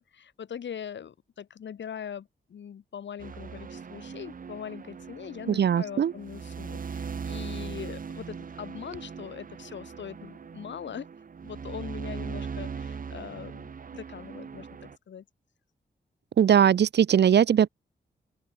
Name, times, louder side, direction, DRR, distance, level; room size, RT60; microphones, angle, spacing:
voice 1, 0.0-11.1 11.4-15.2, left 8 dB, 80° left, 6.3 m, -41 dB
sound 1, 3.2-15.0, right 6 dB, 50° right, 2.4 m, -40 dB
voice 2, 5.5-6.1 16.4-17.7, right 8 dB, 65° right, 1.0 m, -20 dB
open air
wide cardioid pair, 140°, 18 cm